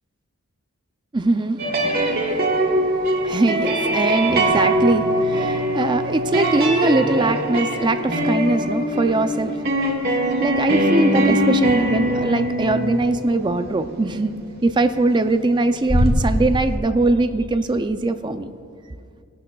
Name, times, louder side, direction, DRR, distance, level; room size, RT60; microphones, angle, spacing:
voice 1, 1.1-14.3 14.6-18.5, right 2 dB, 20° right, 9 dB, 0.4 m, -22 dB
sound 1, 1.6-14.7 15.9-16.8, right 1 dB, 45° right, 1.6 m, -22 dB
18.5 x 12.0 x 2.3 m, 2.3 s
head